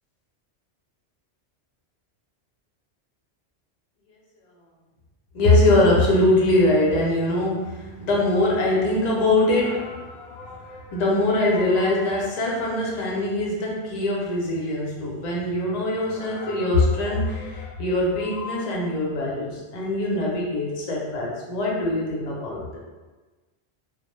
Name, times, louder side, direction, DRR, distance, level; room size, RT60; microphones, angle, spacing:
voice 1, 5.3-22.8, left 2 dB, 50° left, -4 dB, 0.5 m, -22 dB
2.1 x 2.0 x 2.9 m, 1.2 s
omnidirectional pair, 1.2 m